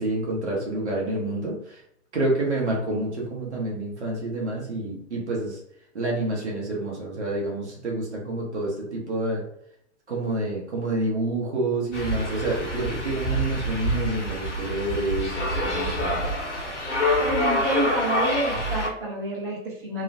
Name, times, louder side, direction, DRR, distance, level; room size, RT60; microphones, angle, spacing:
voice 1, 0.0-1.8 2.1-5.6 5.9-9.4 10.1-16.3, right 2 dB, 75° right, -2 dB, 1.1 m, -28 dB
sound 1, 11.9-18.9, equal, 80° left, 0.9 m, -26 dB
voice 2, 17.2-20.0, right 1 dB, 45° right, -3 dB, 1.0 m, -28 dB
3.0 x 2.0 x 2.6 m, 0.73 s
figure-of-eight pair, 105°, 35 cm